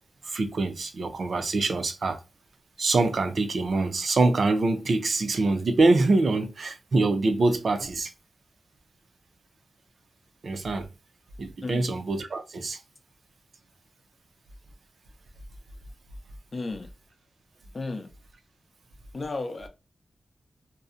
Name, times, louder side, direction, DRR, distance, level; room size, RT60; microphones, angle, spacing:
voice 1, 0.2-2.2 2.8-8.1 10.4-10.9 11.4-12.8, right 3 dB, 55° right, 0.4 m, -24 dB
voice 2, 11.6-11.9 16.5-16.9 17.7-18.1 19.1-19.7, left 3 dB, 40° left, 0.5 m, -33 dB
2.6 x 2.1 x 2.4 m
wide cardioid pair, 130°, 0 cm